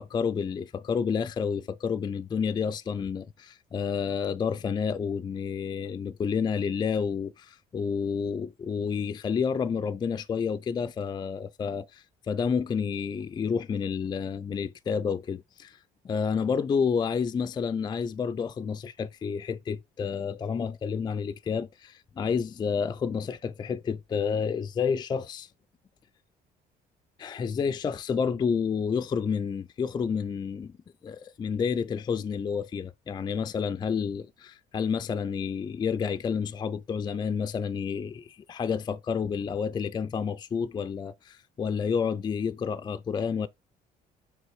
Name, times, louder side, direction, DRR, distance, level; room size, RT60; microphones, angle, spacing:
voice 1, 0.0-15.8 16.0-25.5 27.2-30.7 31.0-43.5, left 6 dB, 25° left, 0.4 m, -30 dB
6.4 x 3.4 x 4.6 m
cardioid pair, 110°, 17 cm